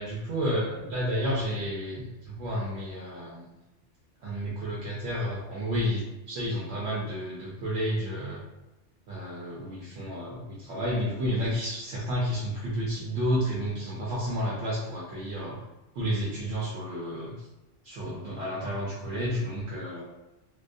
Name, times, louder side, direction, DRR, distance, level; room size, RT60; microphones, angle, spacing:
voice 1, 0.0-3.4 4.2-8.4 9.1-15.6 15.9-17.5 17.8-20.0, equal, 70° right, -5 dB, 0.8 m, -31 dB
2.3 x 2.2 x 2.5 m, 0.98 s
omnidirectional pair, 1.2 m